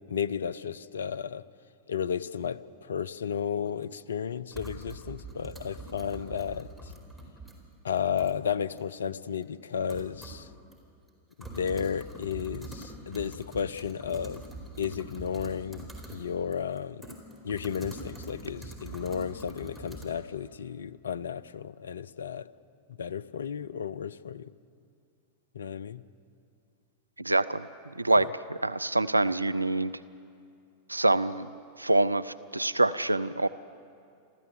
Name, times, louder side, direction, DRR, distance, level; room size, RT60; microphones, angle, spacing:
voice 1, 0.1-1.4 1.9-6.9 7.8-10.5 11.4-14.4 14.8-17.1 17.4-22.5 23.0-24.5 25.5-26.0, left 7 dB, 70° left, 18 dB, 0.6 m, -33 dB
sound 1, 3.7-3.8 4.5-7.5 8.0-8.4 8.8-8.9 9.4-9.5 9.9-10.5 10.7-10.8 11.1-16.2 16.5-20.0, right 2 dB, ahead, 4.5 m, -44 dB
voice 2, 27.2-27.6 28.0-29.9 30.9-31.5 31.8-33.5, right 2 dB, 85° right, 16 dB, 0.4 m, -25 dB
29.0 x 14.0 x 8.0 m, 2.4 s
figure-of-eight pair, 90°, 0 cm